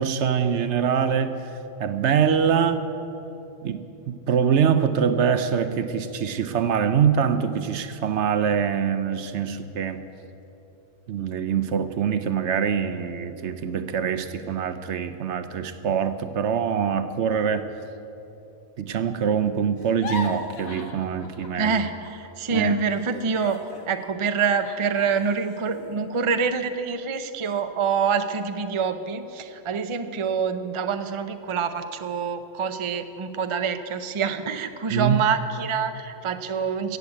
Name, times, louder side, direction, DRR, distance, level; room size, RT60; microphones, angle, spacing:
voice 1, 0.0-1.5 1.8-2.9 3.6-10.0 11.1-17.7 18.8-21.8 22.5-22.8 34.9-35.2, right 7 dB, 60° right, 11 dB, 0.9 m, -24 dB
sound 1, 19.8-22.3 22.5-26.9 27.4-27.6 28.0-28.5, left 3 dB, 80° left, 1.6 m, -40 dB
voice 2, 21.6-37.0, right 6 dB, 45° right, 8 dB, 0.4 m, -26 dB
15.0 x 8.3 x 8.5 m, 2.9 s
omnidirectional pair, 1.4 m